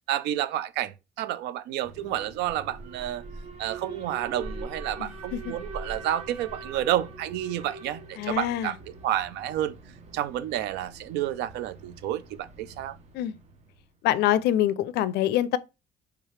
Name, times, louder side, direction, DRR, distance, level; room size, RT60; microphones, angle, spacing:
voice 1, 0.1-3.2 3.6-8.8 9.0-9.7 10.1-13.0, right 12 dB, 85° right, 0.4 m, -30 dB
Alarm, 1.8-13.9, right 2 dB, 40° right, 0.8 m, -43 dB
voice 2, 5.0-5.4 8.2-8.7 13.1-13.3 14.0-15.6, left 12 dB, 80° left, 0.4 m, -25 dB
4.7 x 3.4 x 3.1 m
cardioid pair, 110°, 17 cm